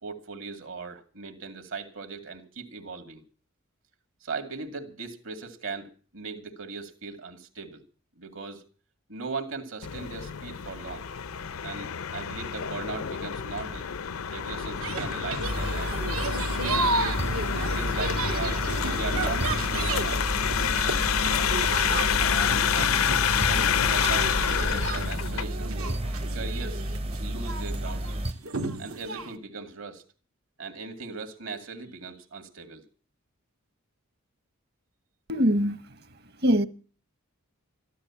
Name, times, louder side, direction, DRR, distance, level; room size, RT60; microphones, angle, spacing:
voice 1, 0.0-3.2 4.2-7.8 8.2-8.6 9.1-11.1 11.6-13.9 14.3-16.0 16.6-17.2 17.7-20.2 21.9-22.1 22.4-25.8 26.3-26.8 27.2-28.3 28.8-30.0 30.6-32.9, right 4 dB, 70° right, 2.4 m, -38 dB
sound 1, 9.8-25.4, left 8 dB, 80° left, 0.6 m, -28 dB
sound 2, 14.8-29.3, right 3 dB, 90° right, 2.1 m, -34 dB
sound 3, 15.4-28.3, right 1 dB, 25° right, 0.6 m, -32 dB
voice 2, 35.3-35.8 36.4-36.7, equal, 50° right, 1.1 m, -22 dB
13.5 x 12.0 x 7.2 m
head